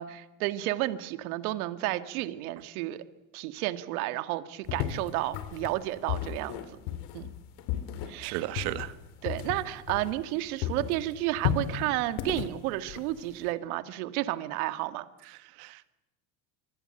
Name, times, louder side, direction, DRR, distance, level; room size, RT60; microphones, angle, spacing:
voice 1, 0.0-3.0 3.3-6.6 7.1-7.3 8.1-8.4 9.2-15.1, right 16 dB, 80° right, 11 dB, 1.9 m, -32 dB
sound 1, 4.7-10.4 10.6-13.5, left 10 dB, 65° left, 3.0 m, -34 dB
voice 2, 8.2-8.9 15.3-15.9, right 17 dB, 65° right, 12 dB, 1.8 m, -35 dB
25.0 x 24.5 x 7.8 m, 1.0 s
supercardioid pair, 130°, 43 cm